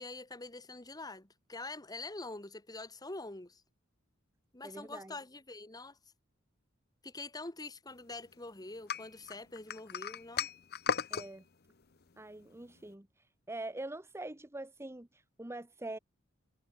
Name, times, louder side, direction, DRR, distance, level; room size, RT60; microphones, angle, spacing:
voice 1, 0.0-3.6 4.5-6.0 7.0-10.5, left 2 dB, 20° left, 1.6 m, -45 dB
voice 2, 4.6-5.1 11.1-11.4 12.2-13.1 13.5-16.0, right 2 dB, 15° right, 1.0 m, -44 dB
sound 1, 8.9-11.3, left 7 dB, 50° left, 0.9 m, -35 dB
head